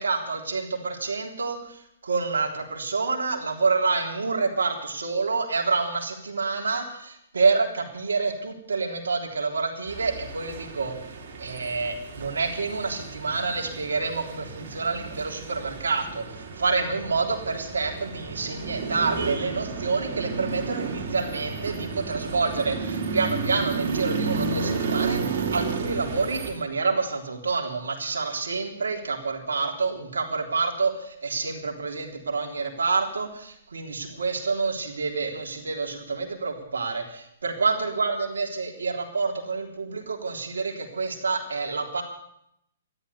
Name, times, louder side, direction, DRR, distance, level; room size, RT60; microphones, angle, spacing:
voice 1, 0.0-10.9 11.4-42.0, right 4 dB, 80° right, 2 dB, 3.5 m, -28 dB
sound 1, 9.9-26.5, right 4 dB, 55° right, 3.9 m, -32 dB
13.5 x 11.5 x 8.3 m, 0.74 s
hypercardioid pair, 130°, 0 cm